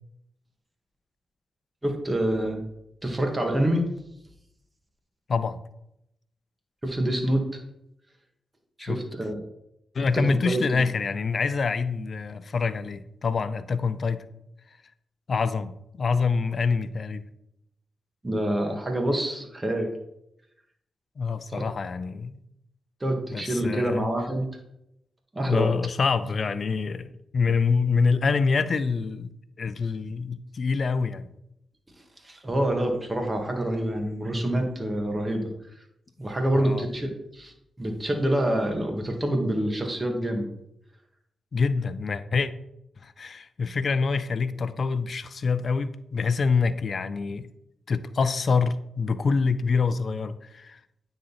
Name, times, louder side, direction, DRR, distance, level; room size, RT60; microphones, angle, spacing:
voice 1, 1.8-2.6 3.0-3.8 6.8-7.4 8.8-9.4 10.0-10.6 18.2-19.9 21.5-21.6 23.0-24.5 25.3-25.7 32.2-35.4 36.2-40.5, right 1 dB, 25° right, 2.0 m, -26 dB
voice 2, 5.3-5.6 8.8-9.0 9.9-14.2 15.3-17.3 21.2-22.4 23.3-24.1 25.5-29.3 29.6-31.3 36.5-36.9 41.5-42.5 43.0-47.5 47.9-50.8, left 5 dB, 60° left, 0.5 m, -26 dB
9.4 x 3.9 x 4.2 m
supercardioid pair, 40°, 0 cm